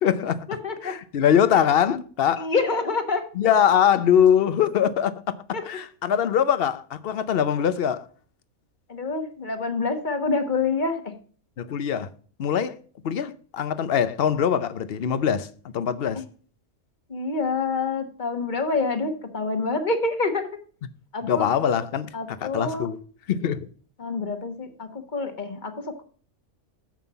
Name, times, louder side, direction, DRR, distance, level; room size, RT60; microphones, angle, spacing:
voice 1, 0.0-0.5 0.8-2.5 3.3-8.1 11.6-12.1 12.4-12.8 13.0-16.2 21.2-23.0 23.3-23.7, left 8 dB, 55° left, 0.8 m, -22 dB
voice 2, 2.4-3.2 5.5-5.6 8.9-11.1 16.1-16.2 17.1-20.5 21.1-21.5 22.1-22.9 24.0-26.0, left 3 dB, 35° left, 1.2 m, -27 dB
7.5 x 5.5 x 6.8 m
omnidirectional pair, 1.5 m